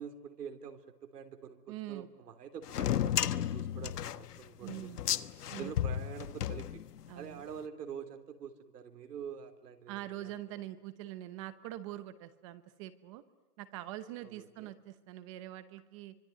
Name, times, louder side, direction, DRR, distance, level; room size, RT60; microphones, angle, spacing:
voice 1, 0.0-5.1 5.5-6.8 7.1-10.3 14.2-14.7, right 7 dB, 85° right, 6 dB, 3.6 m, -46 dB
voice 2, 1.7-2.1 4.6-5.0 5.5-5.7 7.1-7.4 9.9-13.2 13.6-16.1, right 14 dB, 20° right, 13 dB, 0.9 m, -44 dB
sound 1, 2.7-7.2, left 11 dB, 80° left, 1.3 m, -33 dB
25.5 x 24.5 x 9.3 m, 1.1 s
hypercardioid pair, 165°, 46 cm